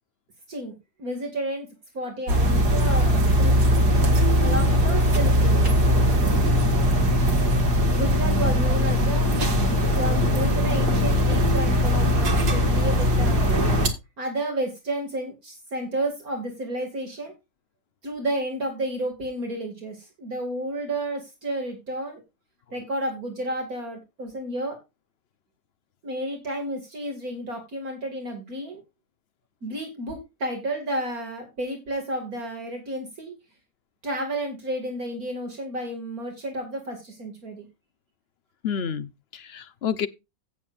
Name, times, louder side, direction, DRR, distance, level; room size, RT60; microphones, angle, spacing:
voice 1, 0.5-1.7 1.9-3.5 4.4-5.7 7.9-9.3 9.9-13.5 14.2-17.3 18.0-22.2 22.7-24.8 26.0-28.8 29.6-33.3 34.0-37.7, right 1 dB, 65° right, 2.8 m, -31 dB
sound 1, 2.3-13.9, equal, 90° right, 2.5 m, -20 dB
voice 2, 38.6-40.1, left 7 dB, 50° left, 0.9 m, -29 dB
16.5 x 7.4 x 2.5 m
omnidirectional pair, 1.7 m